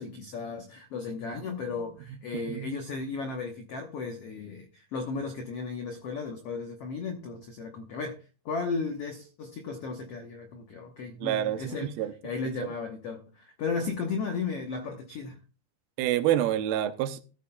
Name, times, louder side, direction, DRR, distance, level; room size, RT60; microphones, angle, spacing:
voice 1, 0.0-8.2 8.4-11.9 12.2-15.4, left 4 dB, 85° left, 1.3 m, -35 dB
voice 2, 2.3-2.7 11.2-12.1 12.6-12.7 16.0-17.2, right 12 dB, 80° right, 2.6 m, -28 dB
14.0 x 13.0 x 2.3 m
omnidirectional pair, 4.4 m